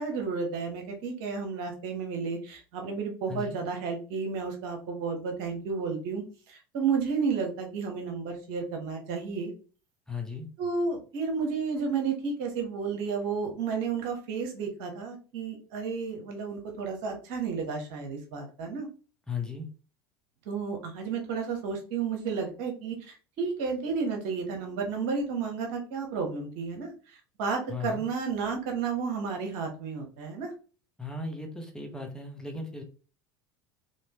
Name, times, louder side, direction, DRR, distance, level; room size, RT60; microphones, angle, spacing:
voice 1, 0.0-9.5 10.6-18.9 20.5-30.5, right 5 dB, 60° right, 3 dB, 1.1 m, -32 dB
voice 2, 3.3-3.6 10.1-10.5 19.3-19.7 27.7-28.0 31.0-32.8, left 4 dB, 5° left, 2 dB, 0.9 m, -36 dB
3.2 x 2.9 x 2.9 m, 0.37 s
hypercardioid pair, 75°, 11 cm